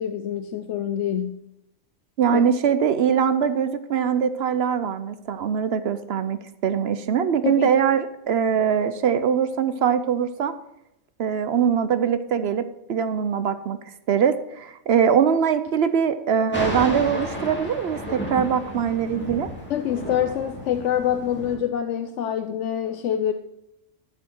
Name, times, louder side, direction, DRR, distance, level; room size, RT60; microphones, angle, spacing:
voice 1, 0.0-1.5 2.3-2.4 7.4-7.7 19.7-23.3, left 9 dB, 70° left, 7 dB, 0.9 m, -26 dB
voice 2, 2.2-10.5 11.2-13.8 14.1-19.5, right 7 dB, 60° right, 12 dB, 0.7 m, -22 dB
Thunder, 16.5-21.6, equal, 10° left, 2.4 m, -32 dB
12.0 x 7.0 x 4.5 m, 0.84 s
omnidirectional pair, 1.4 m